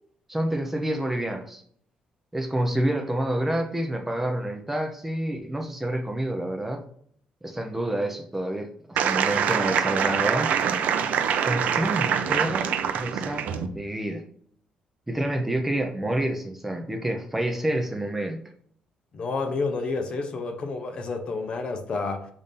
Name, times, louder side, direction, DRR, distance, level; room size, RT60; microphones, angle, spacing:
voice 1, 0.3-1.6 2.3-6.8 7.4-10.5 11.5-12.7 12.9-14.2 15.1-18.4, right 1 dB, 10° right, 0.6 m, -28 dB
sound 1, 9.0-13.7, right 8 dB, 65° right, 0.5 m, -25 dB
voice 2, 19.1-22.3, left 3 dB, 35° left, 0.7 m, -29 dB
6.9 x 2.7 x 5.3 m
cardioid pair, 160°, 3 cm